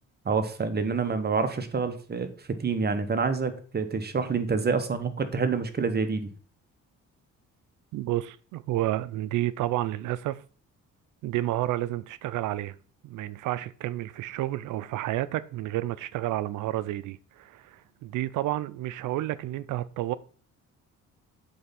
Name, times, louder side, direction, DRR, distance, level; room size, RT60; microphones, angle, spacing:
voice 1, 0.2-2.3 2.6-6.3, right 5 dB, 35° right, 1.1 m, -27 dB
voice 2, 7.9-10.4 11.2-12.8 13.0-20.1, right 15 dB, 85° right, 0.5 m, -30 dB
7.8 x 3.4 x 5.7 m
cardioid pair, 90°, 30 cm